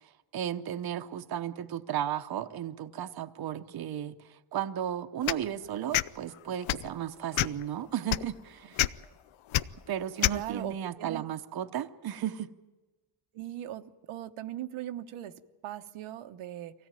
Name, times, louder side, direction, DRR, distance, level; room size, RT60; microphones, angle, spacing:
voice 1, 0.0-8.9 9.9-12.5, right 10 dB, 50° right, 8 dB, 0.9 m, -35 dB
sound 1, 5.2-5.4 5.9-6.1 6.6-6.9 7.3-7.6 8.1-8.2 8.8-8.9 9.5-9.6 10.2-10.4, left 14 dB, 70° left, 0.7 m, -26 dB
voice 2, 10.3-11.2 13.3-16.7, right 12 dB, 90° right, 6 dB, 1.1 m, -40 dB
24.0 x 16.5 x 9.1 m, 1.2 s
cardioid pair, 120°, 49 cm